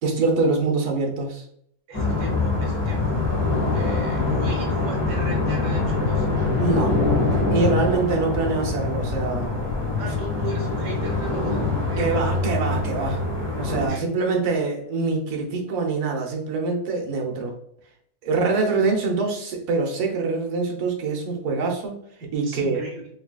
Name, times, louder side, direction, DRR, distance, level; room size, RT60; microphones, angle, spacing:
voice 1, 0.0-1.4 6.6-7.0 7.3-9.5 12.0-13.2 13.6-17.5 18.2-22.0 22.3-22.8, right 3 dB, 85° right, 1 dB, 1.3 m, -24 dB
sound 1, 1.9-13.9, left 3 dB, 25° left, 0.7 m, -24 dB
voice 2, 1.9-3.3 3.7-6.3 10.0-12.3 13.9-14.0 18.3-18.4 22.4-23.0, right 3 dB, 45° right, 0 dB, 1.0 m, -37 dB
3.9 x 3.2 x 2.3 m, 0.68 s
omnidirectional pair, 1.6 m